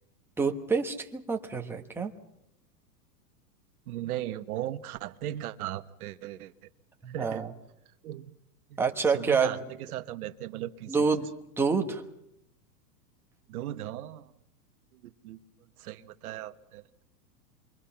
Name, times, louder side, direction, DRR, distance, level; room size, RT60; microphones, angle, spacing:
voice 1, 0.4-2.1 7.0-7.5 8.8-9.6 10.9-11.3 11.6-12.0, right 5 dB, 5° right, 3 dB, 1.2 m, -27 dB
voice 2, 3.9-6.5 7.1-7.4 8.0-8.3 8.7-8.8 9.1-11.1 13.5-14.3 14.9-15.4 15.8-16.8, right 13 dB, 60° right, 9 dB, 1.4 m, -37 dB
28.0 x 22.5 x 5.9 m, 0.81 s
supercardioid pair, 155°, 49 cm